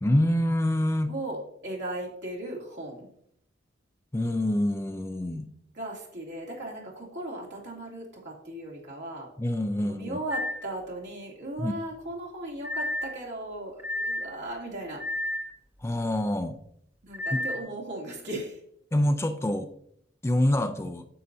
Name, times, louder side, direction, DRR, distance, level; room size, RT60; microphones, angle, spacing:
voice 1, 0.0-1.1 4.1-5.5 9.4-10.2 11.6-11.7 15.8-16.6 17.3-17.4 18.9-19.7 20.2-21.1, left 1 dB, 15° left, 8 dB, 0.4 m, -26 dB
voice 2, 1.0-3.1 5.7-9.3 9.8-15.0 17.0-18.6, right 1 dB, 65° right, -3 dB, 2.8 m, -37 dB
sound 1, 10.3-10.7 12.6-13.2 13.8-14.3 15.0-15.5 17.1-17.6, left 1 dB, 10° right, 0.8 m, -31 dB
9.5 x 7.6 x 2.7 m, 0.71 s
head